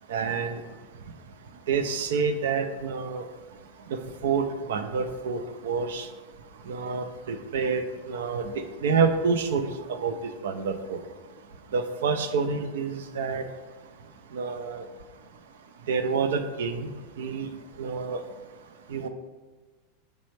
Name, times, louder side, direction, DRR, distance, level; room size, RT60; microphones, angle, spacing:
voice 1, 0.1-0.6 1.7-3.2 4.2-6.1 6.7-8.5 8.8-11.0 11.7-13.4 14.3-14.8 15.9-16.9 17.2-17.5 17.8-18.2 18.9-19.1, right 5 dB, 70° right, 8 dB, 0.4 m, -28 dB
5.2 x 3.2 x 3.2 m, 1.3 s
hypercardioid pair, 95°, 0 cm